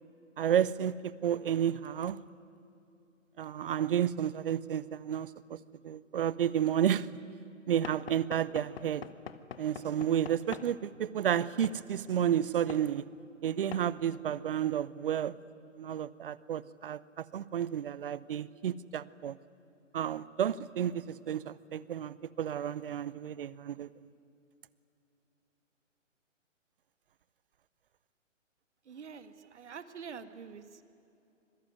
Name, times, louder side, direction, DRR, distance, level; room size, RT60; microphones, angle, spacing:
voice 1, 0.4-2.2 3.4-5.6 5.8-7.1 7.7-9.0 9.6-13.1 13.4-15.4 15.8-19.4 19.9-23.9, right 9 dB, 45° right, 19 dB, 0.9 m, -31 dB
Knock / Wood, 7.8-10.7 11.6-11.8 12.7-12.9 13.7-13.9, left 8 dB, 50° left, 1.3 m, -44 dB
voice 2, 28.9-30.8, right 6 dB, 60° right, 11 dB, 1.9 m, -46 dB
26.0 x 20.5 x 9.5 m, 2.8 s
hypercardioid pair, 145°, 39 cm